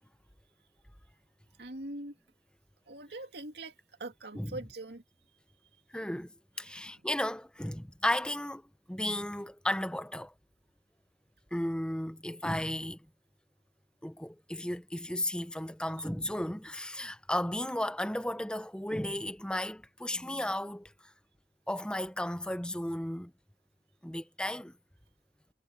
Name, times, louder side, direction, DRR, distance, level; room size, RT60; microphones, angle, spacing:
voice 1, 1.6-2.1 2.9-3.7 4.0-5.0 6.7-6.8, right 2 dB, 70° right, 2.3 m, -42 dB
voice 2, 5.9-8.6 8.9-10.3 11.5-13.0 14.0-20.9 21.7-23.3 24.0-24.7, left 1 dB, 5° left, 0.9 m, -34 dB
head